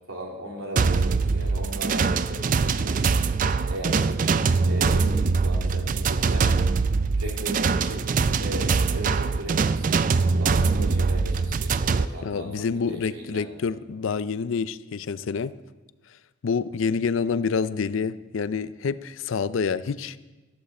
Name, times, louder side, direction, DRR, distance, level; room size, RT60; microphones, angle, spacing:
voice 1, 0.1-3.2 3.7-4.3 4.6-6.5 7.1-8.1 8.4-13.5, equal, 85° right, -1 dB, 3.1 m, -37 dB
sound 1, 0.8-12.1, right 4 dB, 40° right, 0.3 m, -23 dB
voice 2, 12.2-15.5 16.4-20.2, left 5 dB, 70° left, 15 dB, 0.4 m, -27 dB
14.0 x 13.5 x 4.3 m, 1.2 s
head